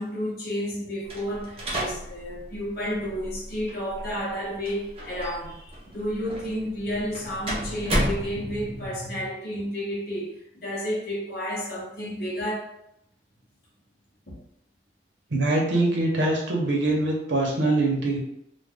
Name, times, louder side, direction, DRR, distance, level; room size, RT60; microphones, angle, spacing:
voice 1, 0.0-12.7 14.3-14.4, equal, 55° left, -5 dB, 0.8 m, -31 dB
sound 1, 1.0-8.9, right 1 dB, 30° right, 0.6 m, -33 dB
voice 2, 15.3-18.2, right 2 dB, 80° right, -1 dB, 0.8 m, -23 dB
2.3 x 2.2 x 3.5 m, 0.76 s
head